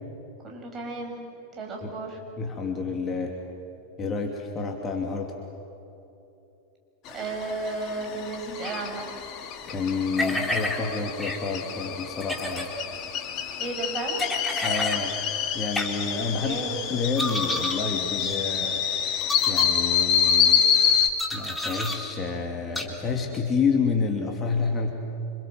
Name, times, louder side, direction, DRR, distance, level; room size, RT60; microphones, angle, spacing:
voice 1, 0.4-1.2 1.5-2.2 7.1-9.0 13.6-14.2 16.4-16.8, right 3 dB, 25° right, 1 dB, 6.9 m, -33 dB
voice 2, 2.4-3.3 4.0-5.3 9.7-12.7 14.6-15.1 15.5-16.5 16.9-18.8 19.5-20.6 20.9-21.0 21.3-24.9, left 5 dB, 20° left, 1 dB, 2.9 m, -29 dB
sound 1, 7.1-21.1, left 8 dB, 40° left, 2.4 m, -27 dB
sound 2, 10.2-10.8 11.2-11.4 12.2-12.7 14.2-15.0 15.7-15.9 17.2-17.8 18.2-18.4 19.2-19.6 21.2-22.0 22.7-22.9, left 1 dB, 5° left, 3.4 m, -29 dB
28.0 x 26.5 x 7.8 m, 2.9 s
figure-of-eight pair, 90°, 0 cm